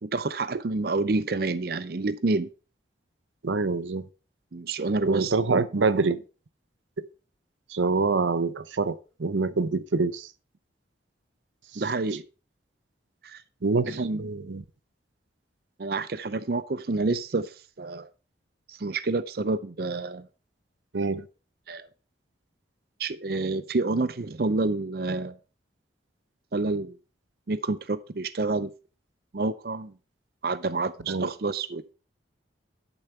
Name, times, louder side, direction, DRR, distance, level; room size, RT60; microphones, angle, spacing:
voice 1, 0.0-2.5 4.5-5.3 11.8-12.2 13.2-13.4 13.9-14.3 15.8-18.1 18.7-20.3 21.7-21.9 23.0-25.4 26.5-27.0 27.5-28.7 29.3-29.9 30.4-31.9, right 3 dB, 55° right, 0.5 m, -28 dB
voice 2, 3.4-4.1 5.1-6.2 7.7-10.3 11.7-11.8 13.6-14.6 20.9-21.3 31.1-31.3, right 4 dB, 90° right, 0.7 m, -26 dB
11.5 x 7.0 x 4.4 m
head